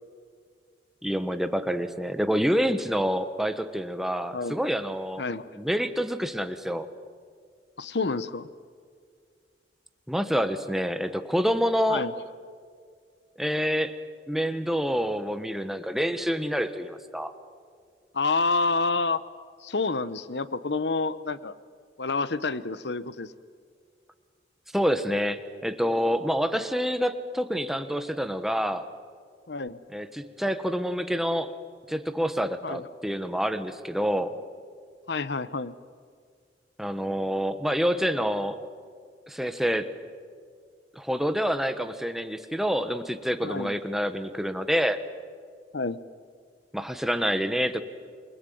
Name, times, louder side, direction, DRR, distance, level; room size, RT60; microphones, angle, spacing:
voice 1, 1.0-5.2 5.5-6.9 10.1-12.1 13.4-13.9 14.3-17.3 24.7-28.9 29.9-31.5 31.9-34.3 36.8-38.6 39.3-39.9 40.9-45.0 46.7-47.8, equal, ahead, 9 dB, 1.3 m, -27 dB
voice 2, 5.2-5.5 7.8-8.5 11.9-12.1 18.1-19.2 19.6-21.5 22.0-23.3 29.5-29.8 32.6-32.8 35.1-35.7 43.4-43.7 45.7-46.0, left 3 dB, 70° left, 16 dB, 1.0 m, -28 dB
28.5 x 20.5 x 9.4 m, 2.1 s
head